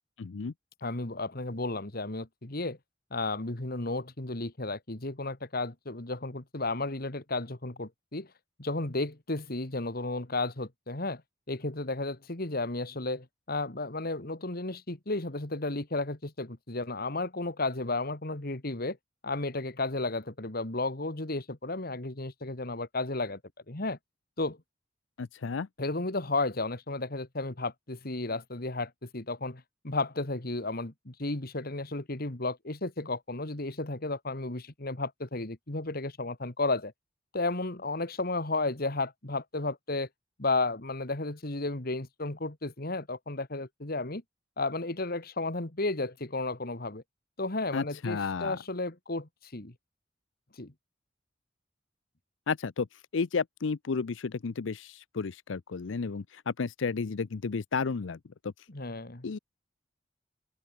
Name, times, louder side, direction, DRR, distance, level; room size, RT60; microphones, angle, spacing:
voice 1, 0.2-0.5 25.2-25.7 47.7-48.6 52.5-58.2 58.4-58.5 59.2-59.4, left 5 dB, 85° left, 0.6 m, -32 dB
voice 2, 0.8-2.8 3.1-8.3 8.6-11.2 11.5-19.0 19.2-23.4 23.7-24.0 24.4-24.6 25.8-36.9 37.3-40.1 40.4-44.2 44.6-47.0 47.4-49.7 50.6-50.7 58.7-59.3, left 2 dB, 50° left, 2.0 m, -33 dB
open air
head